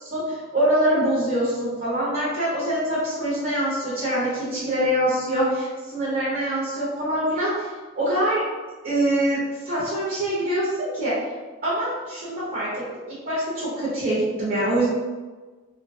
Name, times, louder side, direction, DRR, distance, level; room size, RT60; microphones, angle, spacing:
voice 1, 0.0-8.4 8.8-11.1 11.6-12.8 13.3-14.9, right 1 dB, 50° right, -8 dB, 0.7 m, -24 dB
2.7 x 2.1 x 2.6 m, 1.3 s
head